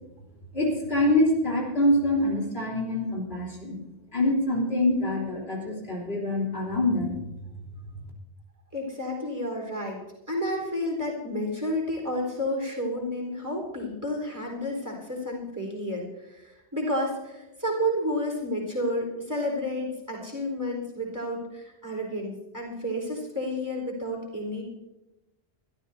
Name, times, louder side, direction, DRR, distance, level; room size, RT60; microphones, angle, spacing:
voice 1, 0.5-3.8 4.1-7.8, left 1 dB, 65° left, -3 dB, 3.7 m, -25 dB
voice 2, 8.7-10.0 10.3-24.6, equal, 15° right, -1 dB, 4.3 m, -31 dB
23.5 x 13.0 x 2.8 m, 0.96 s
omnidirectional pair, 1.1 m